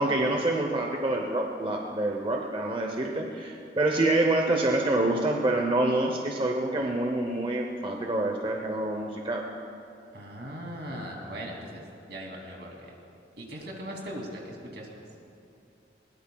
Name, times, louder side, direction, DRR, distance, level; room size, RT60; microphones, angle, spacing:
voice 1, 0.0-9.4, right 2 dB, 30° right, 2 dB, 0.8 m, -27 dB
voice 2, 10.1-11.8 12.1-12.9 13.4-14.9, equal, 70° right, 0 dB, 2.7 m, -39 dB
20.5 x 19.0 x 2.3 m, 2.7 s
head